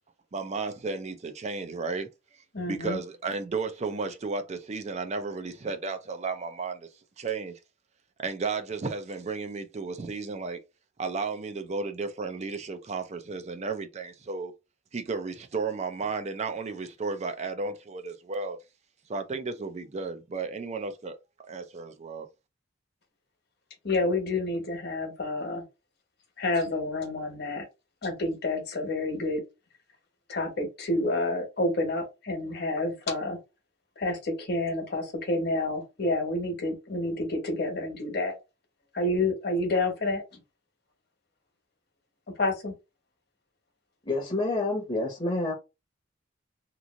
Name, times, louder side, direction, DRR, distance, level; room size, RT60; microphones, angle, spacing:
voice 1, 0.3-2.1 2.7-6.9 7.2-7.6 8.2-10.6 11.0-14.5 14.9-18.6 19.1-21.2 21.5-22.3, right 4 dB, 35° right, 0.4 m, -33 dB
voice 2, 2.5-3.0 23.8-25.6 26.4-27.6 28.0-29.4 30.3-33.4 34.0-38.4 38.9-40.2 42.4-42.7, left 2 dB, 55° left, 1.1 m, -29 dB
voice 3, 44.1-45.5, left 2 dB, 30° left, 0.8 m, -28 dB
3.0 x 2.5 x 2.5 m
head